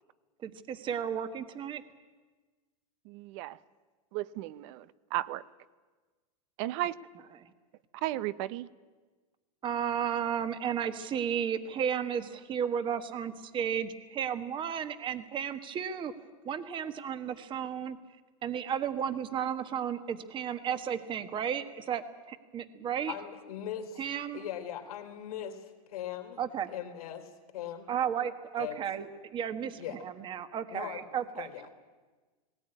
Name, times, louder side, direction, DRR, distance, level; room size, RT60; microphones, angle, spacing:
voice 1, 0.4-1.8 7.4-7.5 9.6-16.1 16.4-18.0 18.4-23.1 24.0-24.4 26.4-26.7 27.9-29.1 29.3-31.5, right 8 dB, 25° right, 1.4 m, -33 dB
voice 2, 3.0-3.6 4.1-5.4 6.6-6.9 7.9-8.7, right 15 dB, 50° right, 0.8 m, -34 dB
voice 3, 23.1-24.1 24.3-26.4 26.7-27.9 28.6-28.8 29.8-30.0 30.7-31.1 31.4-31.7, left 10 dB, 75° left, 3.3 m, -40 dB
18.5 x 18.0 x 9.8 m
supercardioid pair, 135°, 19 cm